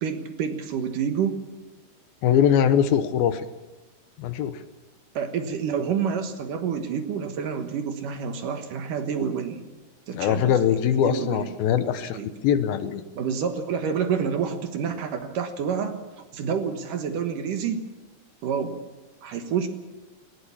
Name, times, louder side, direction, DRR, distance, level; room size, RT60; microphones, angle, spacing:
voice 1, 0.0-1.4 5.2-9.6 10.1-10.5 10.9-11.5 12.1-12.3 13.2-16.0 16.3-17.8 18.4-18.8 19.2-19.7, right 7 dB, 65° right, 7 dB, 2.7 m, -28 dB
voice 2, 2.2-3.5 4.2-4.6 10.1-13.0, left 9 dB, 75° left, 11 dB, 2.6 m, -22 dB
19.5 x 19.5 x 7.2 m, 1.1 s
omnidirectional pair, 4.6 m